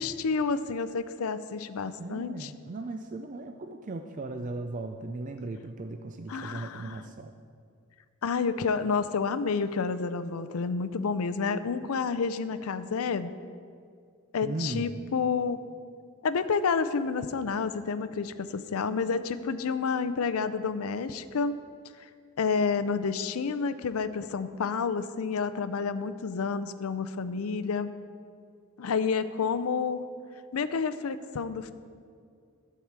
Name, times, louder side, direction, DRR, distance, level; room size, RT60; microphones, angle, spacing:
voice 1, 0.0-2.5 6.3-7.0 8.2-13.3 14.3-15.6 16.2-21.6 22.4-27.9 28.8-30.0 30.5-31.7, left 5 dB, 80° left, 12 dB, 0.5 m, -29 dB
voice 2, 2.0-7.3 14.4-15.0, right 2 dB, 35° right, 4 dB, 0.4 m, -37 dB
12.5 x 4.8 x 7.3 m, 2.2 s
head